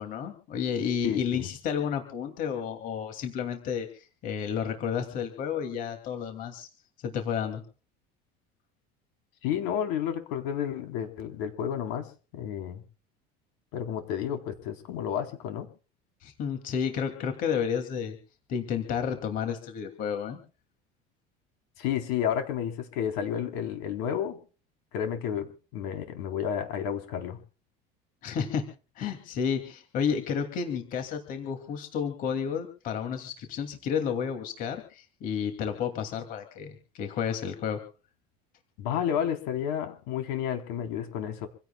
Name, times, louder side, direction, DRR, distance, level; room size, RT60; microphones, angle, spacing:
voice 1, 0.0-6.7 7.0-7.6 16.2-18.2 18.5-20.4 28.2-28.7 29.0-37.8, left 7 dB, 40° left, 5 dB, 2.7 m, -31 dB
voice 2, 1.0-1.5 9.4-12.8 13.7-15.7 21.8-24.4 24.9-27.4 38.8-41.5, left 9 dB, 70° left, 5 dB, 4.0 m, -31 dB
27.0 x 16.5 x 2.4 m, 0.36 s
cardioid pair, 175°, 21 cm